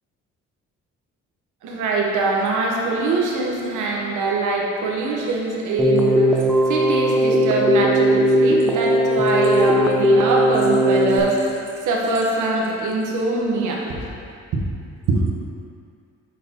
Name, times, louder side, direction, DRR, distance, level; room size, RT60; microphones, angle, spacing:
voice 1, 1.6-14.1 14.5-14.6 15.1-15.2, right 3 dB, 80° right, -1 dB, 1.1 m, -23 dB
Keyboard (musical), 5.8-11.2, equal, ahead, 0.5 m, -18 dB
6.6 x 5.8 x 2.9 m, 2.4 s
cardioid pair, 90°, 30 cm